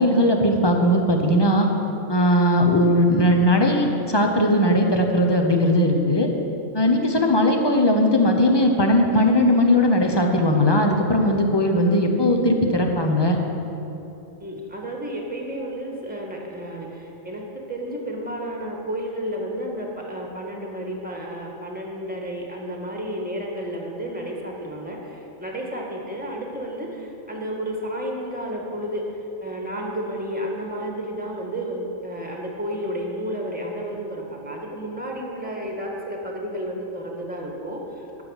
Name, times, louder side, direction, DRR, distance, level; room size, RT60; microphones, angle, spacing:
voice 1, 0.0-1.7 2.1-6.3 6.7-13.4, left 1 dB, 20° left, 2 dB, 0.9 m, -19 dB
voice 2, 14.4-29.0 29.4-38.2, equal, 5° right, -1 dB, 1.5 m, -31 dB
12.0 x 6.7 x 6.4 m, 3.0 s
omnidirectional pair, 1.3 m